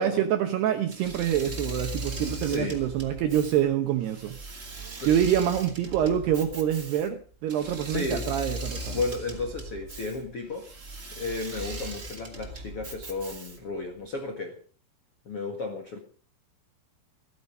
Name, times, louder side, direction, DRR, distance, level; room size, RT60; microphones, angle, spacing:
voice 1, 0.0-4.4 5.1-9.0, right 10 dB, 75° right, 2.4 m, -26 dB
Engine / Mechanisms, 0.9-13.8, right 1 dB, 35° right, 1.2 m, -39 dB
voice 2, 2.5-2.8 5.0-5.1 7.9-8.2 8.9-10.7 11.1-14.6 15.2-16.0, left 3 dB, 75° left, 1.3 m, -33 dB
14.5 x 14.0 x 5.3 m
omnidirectional pair, 6.0 m